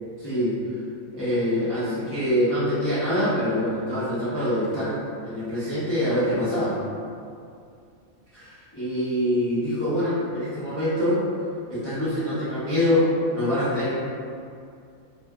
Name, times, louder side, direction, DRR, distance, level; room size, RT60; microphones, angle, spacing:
voice 1, 0.2-0.6 1.1-6.7 8.3-11.2 11.7-13.1 13.3-13.9, left 1 dB, 15° left, -14 dB, 0.5 m, -25 dB
3.1 x 2.6 x 2.3 m, 2.4 s
omnidirectional pair, 1.4 m